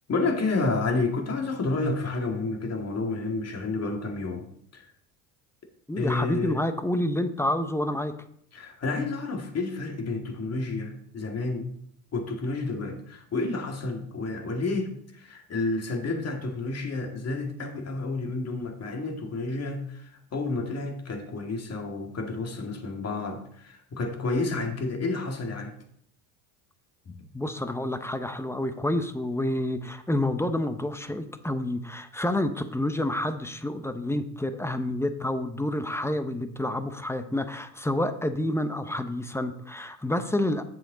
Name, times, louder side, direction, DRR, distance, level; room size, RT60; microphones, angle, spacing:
voice 1, 0.1-4.5 4.7-4.9 6.0-6.7 8.5-11.7 12.1-25.8 27.1-27.2, left 3 dB, 35° left, 3 dB, 2.1 m, -30 dB
voice 2, 5.9-8.2 27.3-40.6, left 1 dB, 5° left, 9 dB, 0.7 m, -28 dB
8.1 x 7.3 x 3.9 m, 0.66 s
supercardioid pair, 85°, 43 cm